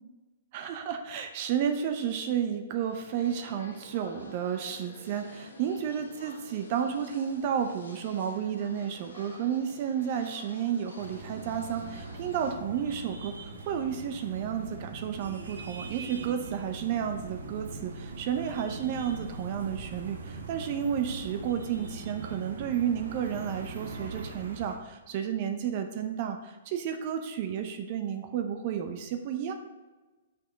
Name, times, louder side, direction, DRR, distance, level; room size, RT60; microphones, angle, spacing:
voice 1, 0.5-29.5, right 8 dB, 45° right, 6 dB, 0.6 m, -32 dB
sound 1, 2.9-12.6, left 2 dB, 85° left, 1.3 m, -49 dB
sound 2, 11.0-24.8, right 3 dB, 80° right, 1.0 m, -41 dB
6.4 x 5.4 x 3.9 m, 1.2 s
hypercardioid pair, 120°, 0 cm